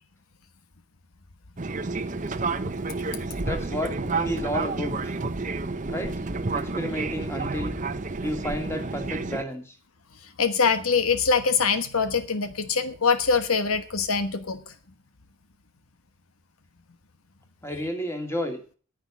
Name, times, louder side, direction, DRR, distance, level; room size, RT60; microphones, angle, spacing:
Fixed-wing aircraft airplane, 1.6-9.4, right 3 dB, 35° right, 0.8 m, -30 dB
voice 1, 3.4-5.1 5.9-6.1 6.5-7.7 8.2-9.7 17.6-18.6, equal, 10° left, 4 dB, 2.3 m, -31 dB
voice 2, 10.4-14.6, left 5 dB, 90° left, 10 dB, 1.3 m, -23 dB
10.0 x 9.0 x 8.3 m, 0.40 s
head